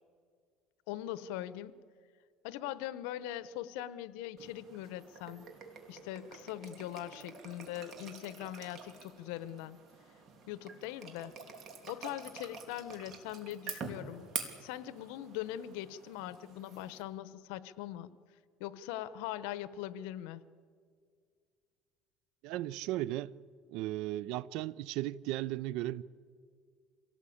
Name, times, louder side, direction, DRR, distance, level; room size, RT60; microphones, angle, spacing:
voice 1, 0.9-1.8 2.4-5.5 5.9-9.8 10.5-11.3 11.9-14.3 14.6-18.1 18.6-20.4, left 12 dB, 85° left, 0.9 m, -41 dB
sound 1, 4.4-17.0, right 5 dB, 45° right, 3.0 m, -47 dB
voice 2, 22.4-23.3 23.7-26.0, right 15 dB, 70° right, 0.5 m, -36 dB
26.0 x 17.5 x 8.6 m
cardioid pair, 135°, 0 cm